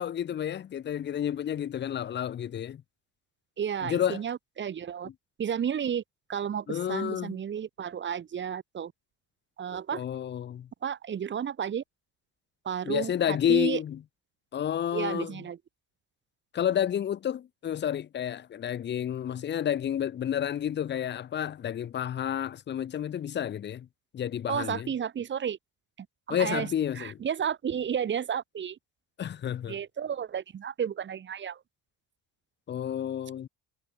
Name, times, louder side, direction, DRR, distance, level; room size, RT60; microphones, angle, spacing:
voice 1, 0.0-2.8 3.8-4.2 6.7-7.4 9.9-10.7 12.8-14.0 14.5-15.4 16.5-23.9 24.1-24.9 26.3-27.2 29.2-29.8 32.7-33.5, left 10 dB, 30° left, 0.8 m, -30 dB
voice 2, 3.6-5.1 5.4-6.0 6.3-8.9 9.6-10.0 10.8-11.8 12.6-13.8 14.9-15.6 24.5-25.6 26.0-26.7 26.9-28.8 29.7-31.6, right 8 dB, 35° right, 1.5 m, -32 dB
cardioid pair, 135°, 34 cm